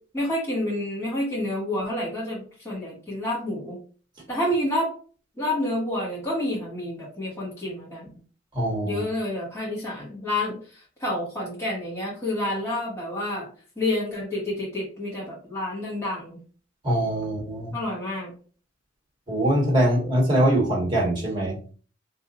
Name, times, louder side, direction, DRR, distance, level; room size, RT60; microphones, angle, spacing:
voice 1, 0.1-3.8 4.3-4.9 5.4-8.1 8.8-13.5 13.8-16.4 17.7-18.3, left 1 dB, 15° left, -6 dB, 1.2 m, -29 dB
voice 2, 8.5-9.0 16.8-17.7 19.3-21.6, right 1 dB, 25° right, -3 dB, 1.3 m, -23 dB
2.7 x 2.4 x 3.9 m, 0.40 s
head